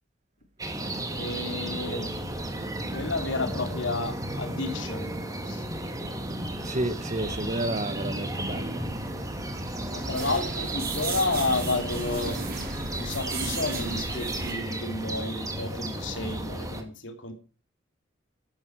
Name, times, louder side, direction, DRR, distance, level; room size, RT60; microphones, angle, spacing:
sound 1, 0.6-16.8, right 1 dB, 20° right, 2.3 m, -33 dB
voice 1, 1.1-2.2 2.9-5.1 5.5-5.6 9.9-12.4 13.0-17.3, left 3 dB, 75° left, 3.0 m, -31 dB
voice 2, 6.6-9.8, right 1 dB, 40° right, 1.1 m, -32 dB
sound 2, 9.1-14.5, right 3 dB, 55° right, 4.9 m, -36 dB
13.0 x 11.0 x 4.7 m
head